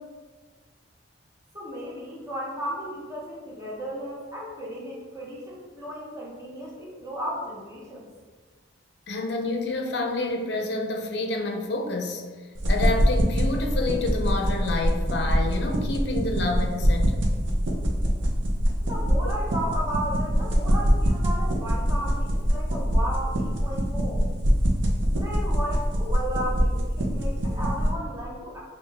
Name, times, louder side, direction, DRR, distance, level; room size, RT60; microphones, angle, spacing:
voice 1, 1.5-8.0 18.8-24.3 25.2-28.6, equal, 15° right, -5 dB, 0.9 m, -34 dB
voice 2, 9.1-12.2 12.7-17.2, left 2 dB, 60° left, 3 dB, 0.5 m, -28 dB
sound 1, 12.5-27.9, equal, 75° right, 0.7 m, -24 dB
5.2 x 2.4 x 3.4 m, 1.5 s
head